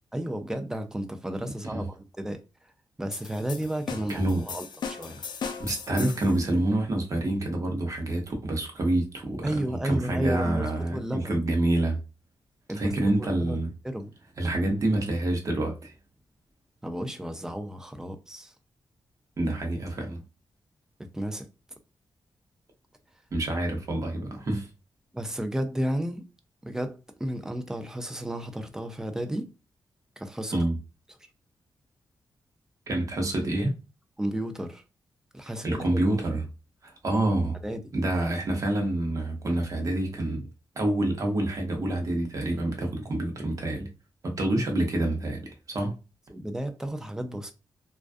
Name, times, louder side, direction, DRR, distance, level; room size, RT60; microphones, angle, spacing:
voice 1, 0.1-2.4 3.0-5.2 9.4-11.3 12.7-13.6 13.8-14.1 16.8-18.5 21.0-21.5 25.1-26.3 26.6-29.5 30.2-30.6 34.2-34.8 35.3-36.2 37.6-37.9 46.3-47.5, right 1 dB, 5° right, 0.3 m, -33 dB
sound 1, 3.1-6.4, left 6 dB, 60° left, 0.4 m, -37 dB
voice 2, 4.1-4.4 5.6-12.0 12.7-13.7 14.4-15.9 19.4-20.2 23.3-24.7 30.5-30.8 32.9-33.7 35.6-36.4 36.8-37.6 37.9-40.4 40.8-43.9 44.2-45.9, right 1 dB, 40° right, 0.8 m, -27 dB
2.3 x 2.3 x 2.4 m
wide cardioid pair, 140°, 8 cm